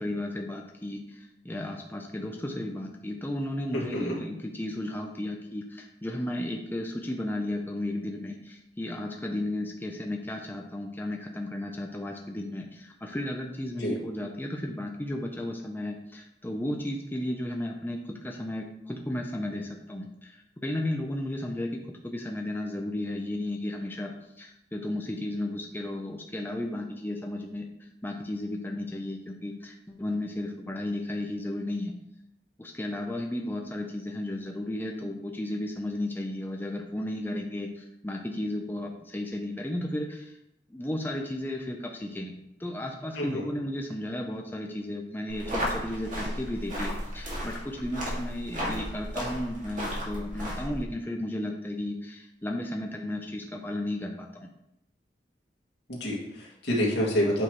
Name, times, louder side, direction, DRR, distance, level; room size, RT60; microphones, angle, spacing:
voice 1, 0.0-21.7 22.0-27.7 28.0-31.9 32.6-40.3 40.7-42.3 42.6-54.5, left 1 dB, 10° left, 1 dB, 0.6 m, -34 dB
voice 2, 3.7-4.2 13.8-14.0 43.2-43.4 55.9-57.4, equal, 80° left, -3 dB, 2.1 m, -28 dB
sound 1, 45.3-50.8, equal, 50° right, 2.2 m, -34 dB
8.8 x 5.0 x 3.1 m, 0.81 s
head